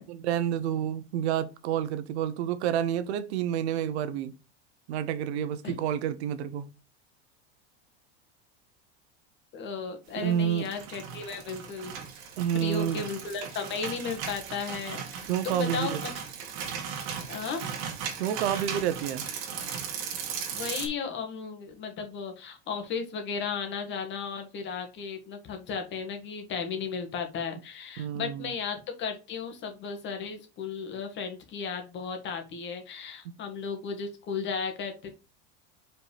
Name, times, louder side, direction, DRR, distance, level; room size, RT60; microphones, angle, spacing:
voice 1, 0.1-4.3 4.9-6.7 10.2-10.7 12.4-13.0 15.3-16.0 18.2-19.2 28.0-28.5, right 10 dB, 85° right, 1.0 m, -29 dB
voice 2, 9.5-11.9 12.5-16.1 17.3-17.7 20.5-35.1, left 5 dB, 35° left, 1.8 m, -35 dB
sound 1, 10.4-20.9, right 7 dB, 55° right, 2.2 m, -37 dB
5.5 x 4.5 x 4.9 m
supercardioid pair, 145°, 32 cm